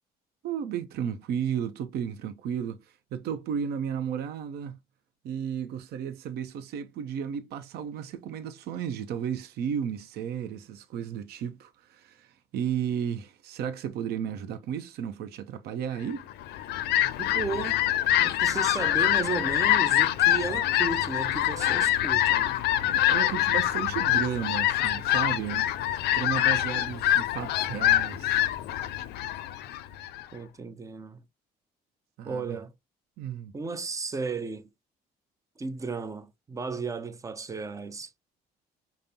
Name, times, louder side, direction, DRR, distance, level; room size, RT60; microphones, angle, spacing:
voice 1, 0.4-4.8 5.2-16.3 22.7-25.7 26.1-28.5 32.2-32.6 33.2-33.6, right 8 dB, 70° right, 0.6 m, -33 dB
Fowl, 16.3-30.2, left 13 dB, 75° left, 0.4 m, -25 dB
voice 2, 17.2-17.8 18.2-22.6 30.3-31.2 32.3-32.7 33.5-34.7 35.6-38.1, right 4 dB, 20° right, 0.4 m, -34 dB
5.1 x 2.0 x 2.7 m
cardioid pair, 110°, 17 cm